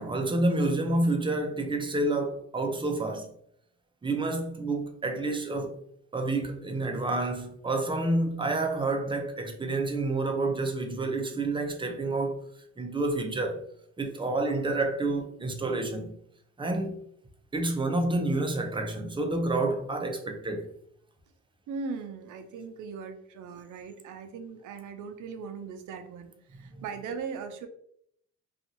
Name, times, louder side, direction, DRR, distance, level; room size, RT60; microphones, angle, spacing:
voice 1, 0.0-3.3 4.0-5.8 6.1-12.4 12.8-13.6 14.0-16.2 16.6-17.0 17.5-20.7 26.7-26.8, right 2 dB, 15° right, 0.5 m, -29 dB
voice 2, 21.7-27.7, right 5 dB, 80° right, 0.5 m, -39 dB
2.6 x 2.4 x 2.7 m
cardioid pair, 90°, 30 cm